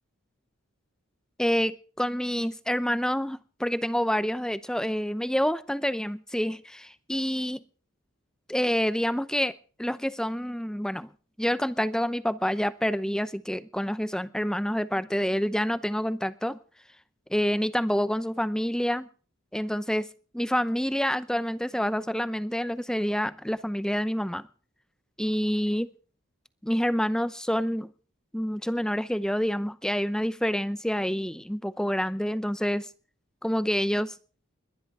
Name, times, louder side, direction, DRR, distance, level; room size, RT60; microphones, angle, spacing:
voice 1, 1.4-7.6 8.5-11.1 11.4-16.6 17.3-19.1 19.5-20.1 20.3-24.4 25.2-25.9 26.6-27.9 28.3-32.9 33.4-34.1, equal, 5° left, 0.7 m, -27 dB
21.5 x 11.0 x 4.8 m
head